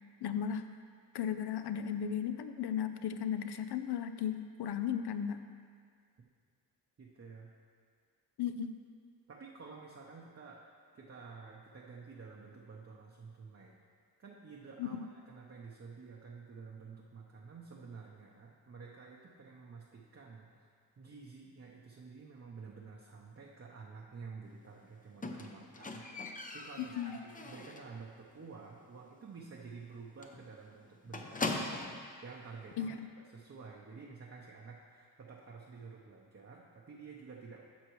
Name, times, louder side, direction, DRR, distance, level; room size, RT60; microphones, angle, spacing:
voice 1, 0.2-0.6 1.1-5.4 8.4-8.7 14.8-15.1 26.8-27.2 32.8-33.1, left 8 dB, 70° left, 9 dB, 0.6 m, -35 dB
voice 2, 7.0-7.5 9.3-10.6 10.9-13.8 14.2-20.5 21.0-26.1 26.5-32.9 33.3-37.6, right 4 dB, 35° right, -2 dB, 0.7 m, -50 dB
Squeak, 25.2-28.0 28.3-28.7 29.0-29.1 29.5-29.6 29.8-30.0 30.2-32.1 32.9-33.0, left 2 dB, 20° left, 0.5 m, -40 dB
11.5 x 6.7 x 3.1 m, 2.1 s
wide cardioid pair, 115°, 41 cm